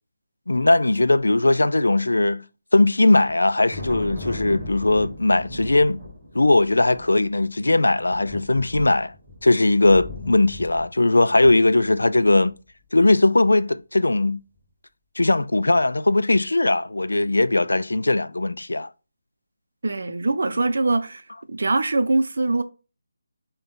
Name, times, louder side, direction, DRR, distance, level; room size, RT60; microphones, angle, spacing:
voice 1, 0.5-2.4 2.7-6.0 6.3-9.1 9.4-12.5 12.9-14.4 15.2-18.9, left 2 dB, 85° left, 0.4 m, -19 dB
Thunder, 3.3-12.5, left 2 dB, 10° right, 2.6 m, -38 dB
voice 2, 19.8-21.2 21.5-22.6, right 2 dB, 65° right, 0.6 m, -22 dB
5.0 x 2.3 x 3.9 m
figure-of-eight pair, 160°, 0 cm